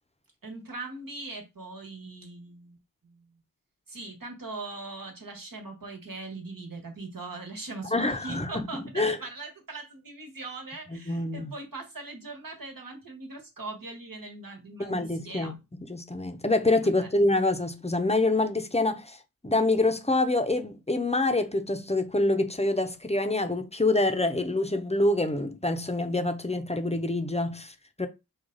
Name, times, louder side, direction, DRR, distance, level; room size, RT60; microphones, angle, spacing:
voice 1, 0.4-2.8 3.0-3.3 3.9-15.6 17.0-17.1, right 3 dB, 65° right, 1.4 m, -40 dB
voice 2, 7.9-9.2 10.9-11.5 14.8-15.5 15.9-19.2 19.4-28.1, left 2 dB, 20° left, 0.6 m, -26 dB
4.9 x 2.3 x 3.8 m
wide cardioid pair, 45°, 36 cm